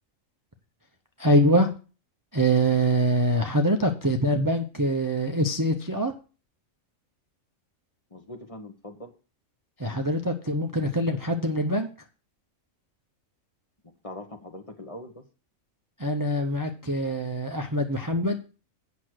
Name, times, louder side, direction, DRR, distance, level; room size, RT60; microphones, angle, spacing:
voice 1, 1.2-1.7 2.3-6.1 9.8-11.9 16.0-18.4, right 1 dB, 20° right, 4 dB, 0.6 m, -24 dB
voice 2, 8.1-9.1 14.0-15.2, left 1 dB, 25° left, 5 dB, 1.0 m, -41 dB
8.2 x 6.1 x 6.3 m, 0.36 s
omnidirectional pair, 1.4 m